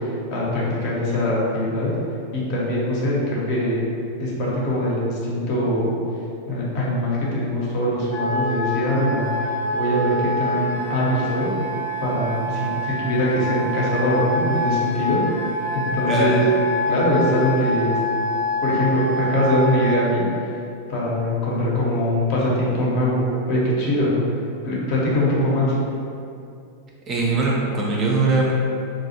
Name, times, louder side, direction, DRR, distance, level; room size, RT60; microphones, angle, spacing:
voice 1, 0.0-1.9 2.3-3.8 4.2-6.0 6.5-9.3 9.7-11.5 12.0-15.2 15.7-16.4 16.9-18.0 18.6-20.2 20.9-24.2 24.6-25.8, left 1 dB, 45° left, -5 dB, 0.6 m, -22 dB
Wind instrument woodwind instrument, 8.1-20.1, left 1 dB, 90° left, 0.7 m, -26 dB
voice 2, 16.1-16.4 27.1-28.5, right 3 dB, 30° right, -3 dB, 0.4 m, -21 dB
2.3 x 2.0 x 2.7 m, 2.5 s
figure-of-eight pair, 90°, 0 cm